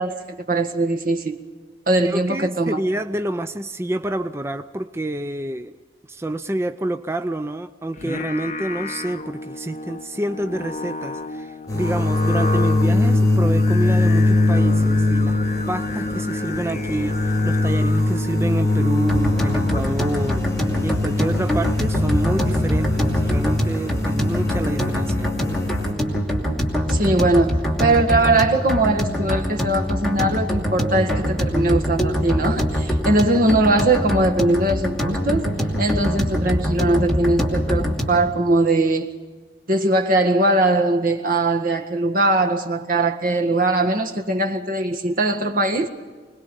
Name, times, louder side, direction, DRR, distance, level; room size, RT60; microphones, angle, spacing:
voice 1, 0.0-1.4 1.9-2.8 26.9-39.1 39.7-45.9, right 2 dB, 55° right, 1.8 m, -20 dB
voice 2, 2.0-5.7 6.1-15.4 15.7-20.4 20.8-25.3, right 1 dB, 15° right, 0.5 m, -28 dB
Singing, 7.9-20.1, left 2 dB, 40° left, 1.1 m, -32 dB
sound 1, 11.7-25.9, left 2 dB, 20° left, 4.9 m, -21 dB
sound 2, 19.1-38.3, equal, ahead, 2.6 m, -24 dB
25.5 x 20.0 x 5.4 m
head